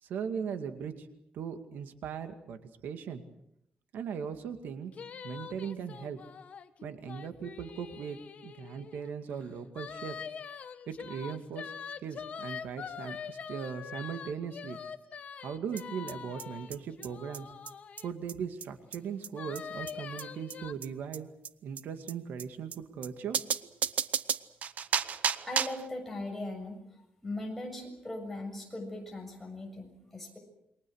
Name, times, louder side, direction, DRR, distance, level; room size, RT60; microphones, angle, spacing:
voice 1, 0.0-1.1 1.3-3.2 3.9-4.9 5.2-6.2 6.8-10.2 10.9-11.7 12.0-14.8 15.4-17.5 18.0-21.3 21.6-23.4 23.6-23.8, right 7 dB, 85° right, 7 dB, 2.2 m, -39 dB
sound 1, 4.9-9.1 9.7-18.1 19.3-20.7, left 7 dB, 45° left, 1.4 m, -44 dB
sound 2, 15.8-15.9 16.1-16.2 16.4-16.5 16.7-16.8 17.0-17.1 17.3-17.4 17.7-17.8 18.0-18.1 18.3-18.4 18.6-18.7 18.9-19.0 19.2-19.3 19.6-19.7 19.9-20.0 20.2-20.3 20.5-20.6 20.8-20.9 21.1-21.2 21.4-21.5 21.8-21.9 22.1-22.2 22.4-22.5 22.7-22.8 23.0-23.1 23.3-25.9, right 7 dB, 50° right, 0.9 m, -32 dB
voice 2, 24.9-30.4, left 2 dB, 5° left, 1 dB, 7.1 m, -40 dB
28.5 x 23.5 x 6.5 m, 0.77 s
wide cardioid pair, 170°, 3 cm